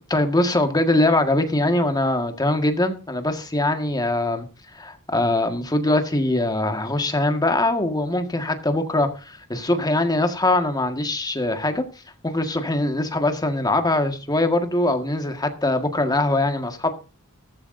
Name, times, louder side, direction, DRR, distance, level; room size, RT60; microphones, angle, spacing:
voice 1, 0.1-4.5 4.7-11.8 12.2-16.9, left 2 dB, 20° left, 1.7 m, -22 dB
14.5 x 14.5 x 2.7 m
head